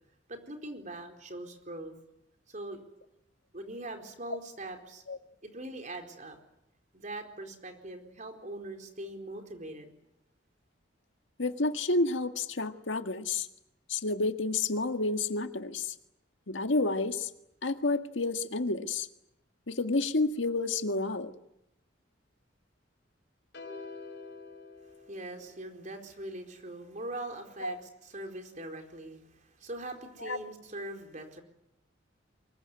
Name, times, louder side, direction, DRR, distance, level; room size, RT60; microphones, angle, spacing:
voice 1, 0.3-1.9 2.5-2.8 3.5-5.0 5.4-6.4 6.9-9.9 25.1-31.4, right 1 dB, 45° right, 4 dB, 4.4 m, -42 dB
voice 2, 11.4-13.5 13.9-15.9 16.5-17.3 17.6-19.1 19.7-21.3 27.6-27.8 30.2-30.4, left 3 dB, 85° left, 7 dB, 1.8 m, -30 dB
sound 1, 23.5-25.9, left 3 dB, 60° left, 5.9 m, -46 dB
24.5 x 22.5 x 9.6 m, 0.82 s
head